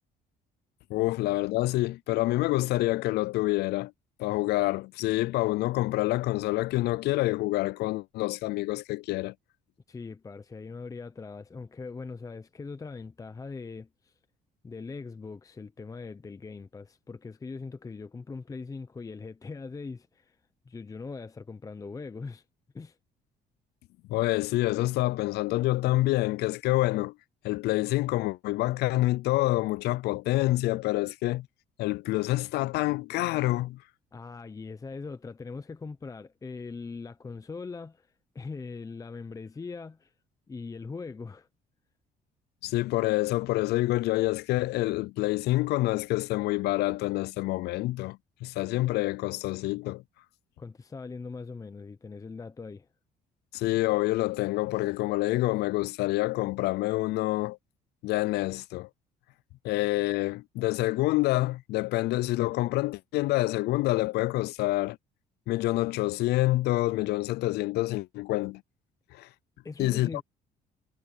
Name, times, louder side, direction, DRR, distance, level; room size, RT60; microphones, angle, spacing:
voice 1, 0.9-3.9 4.2-9.3 24.1-27.1 27.4-31.5 31.8-33.8 42.6-50.0 53.5-57.6 58.0-58.9 59.6-65.0 65.5-68.6 69.1-69.3 69.8-70.1, left 18 dB, 75° left, 0.4 m, -27 dB
voice 2, 9.9-14.1 14.6-20.4 20.7-22.4 22.7-23.0 34.1-38.1 38.3-40.1 40.5-41.5 50.6-52.9 69.6-70.2, left 4 dB, 20° left, 0.7 m, -41 dB
cardioid pair, 110°, 17 cm